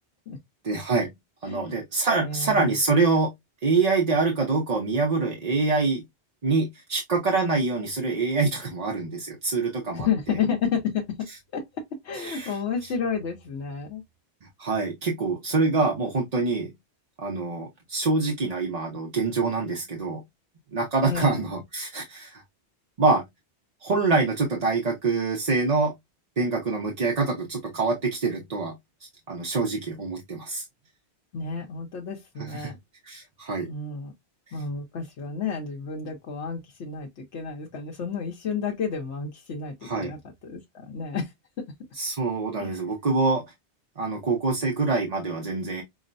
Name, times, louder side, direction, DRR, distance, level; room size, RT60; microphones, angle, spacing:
voice 1, 0.6-1.1 1.4-3.3 3.6-6.0 6.4-10.1 12.1-12.6 12.8-12.9 14.6-16.7 17.2-20.2 20.7-22.4 23.0-23.2 23.8-25.9 26.4-28.8 29.3-30.6 32.5-32.7 33.0-33.7 39.8-40.1 42.0-43.4 44.0-45.8, right 3 dB, 40° right, 0.7 m, -25 dB
voice 2, 1.5-1.8 2.2-2.8 9.9-14.0 21.0-21.4 31.3-32.8 33.7-34.1 34.5-41.6 42.6-42.8, left 6 dB, 80° left, 1.2 m, -31 dB
5.9 x 2.1 x 2.5 m
omnidirectional pair, 1.1 m